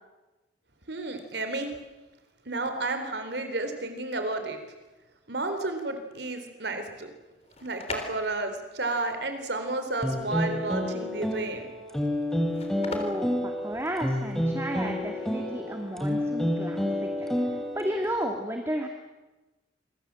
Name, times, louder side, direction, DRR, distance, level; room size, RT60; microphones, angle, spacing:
voice 1, 0.9-1.7 2.5-4.6 5.3-7.1 7.6-11.7, right 2 dB, 70° right, 7 dB, 3.9 m, -31 dB
sound 1, 7.2-14.3, left 3 dB, 35° left, 3.7 m, -42 dB
sound 2, 10.0-18.1, left 1 dB, ahead, 3.5 m, -29 dB
voice 2, 12.9-18.9, equal, 15° right, 3 dB, 2.0 m, -33 dB
27.0 x 24.0 x 7.7 m, 1.1 s
head